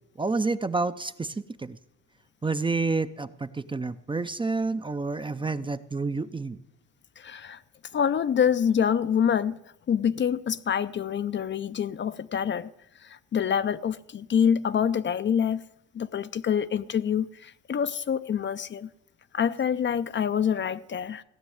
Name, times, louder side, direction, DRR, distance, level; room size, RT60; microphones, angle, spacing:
voice 1, 0.2-1.3 1.6-1.8 2.4-6.6, right 3 dB, 15° right, 0.5 m, -29 dB
voice 2, 7.2-7.6 7.9-9.6 9.9-12.7 13.3-15.6 16.0-18.9 19.3-21.2, left 8 dB, 40° left, 0.5 m, -26 dB
16.0 x 6.2 x 9.3 m
cardioid pair, 90°, 30 cm